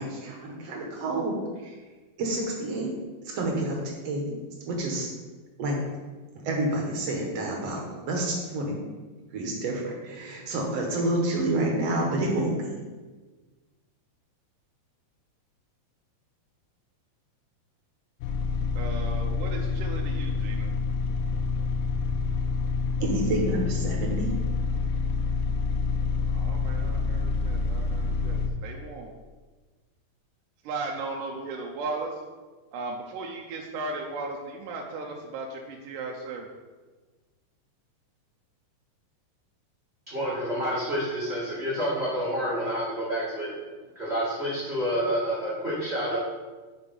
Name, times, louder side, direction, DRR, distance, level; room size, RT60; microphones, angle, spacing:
voice 1, 0.0-1.8 2.2-2.9 3.2-3.8 4.0-4.4 4.7-5.1 5.6-5.8 6.4-8.8 9.3-12.8 23.0-24.3, right 2 dB, 60° right, -1 dB, 1.8 m, -29 dB
sound 1, 18.2-28.5, left 4 dB, 85° left, 1.7 m, -27 dB
voice 2, 18.8-20.7 26.3-29.1 30.6-32.2 32.7-36.5, right 3 dB, 75° right, 0 dB, 2.1 m, -36 dB
voice 3, 40.1-43.5 43.9-46.2, equal, 35° right, -8 dB, 1.0 m, -28 dB
8.3 x 4.8 x 5.3 m, 1.3 s
omnidirectional pair, 4.3 m